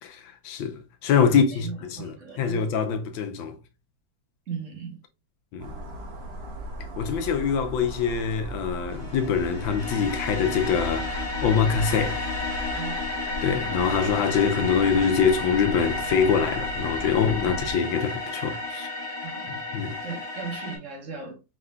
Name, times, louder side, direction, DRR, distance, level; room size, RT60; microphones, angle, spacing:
voice 1, 0.0-3.6 5.5-5.9 7.0-12.2 12.6-12.8 13.4-18.9 19.7-20.0, left 6 dB, 80° left, 1.5 m, -24 dB
voice 2, 1.3-2.6 4.5-5.0 12.7-13.1 17.4-17.7 19.2-19.5 20.0-21.4, right 5 dB, 45° right, 1.4 m, -37 dB
sound 1, 5.6-17.7, equal, 65° right, 0.6 m, -37 dB
sound 2, 8.9-20.8, left 3 dB, 15° right, 2.5 m, -32 dB
4.9 x 3.5 x 2.2 m
omnidirectional pair, 2.1 m